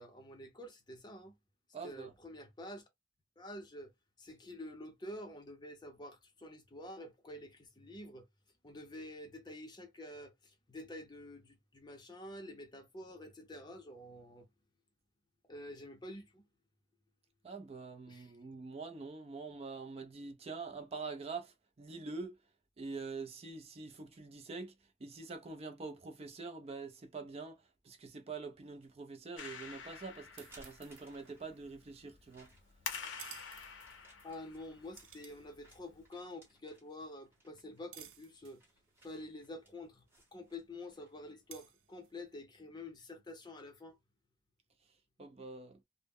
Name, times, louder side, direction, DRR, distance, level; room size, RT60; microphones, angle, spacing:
voice 1, 0.0-1.3 1.8-2.9 3.4-3.9 4.2-8.3 8.6-14.5 15.5-16.4 18.1-18.3 34.2-38.6 39.0-40.0 40.3-44.0, left 1 dB, 25° left, 0.6 m, -48 dB
voice 2, 1.7-2.1 17.4-22.4 22.8-24.7 25.0-32.5 45.2-45.8, right 4 dB, 30° right, 0.4 m, -45 dB
sound 1, 28.5-28.9 29.5-29.6 30.2-31.7 32.3-32.9 33.8-41.3, right 1 dB, 10° right, 0.8 m, -64 dB
Clapping, 29.4-36.1, left 6 dB, 80° left, 0.5 m, -49 dB
sound 2, 29.7-42.4, right 10 dB, 90° right, 0.4 m, -59 dB
2.0 x 2.0 x 3.4 m
head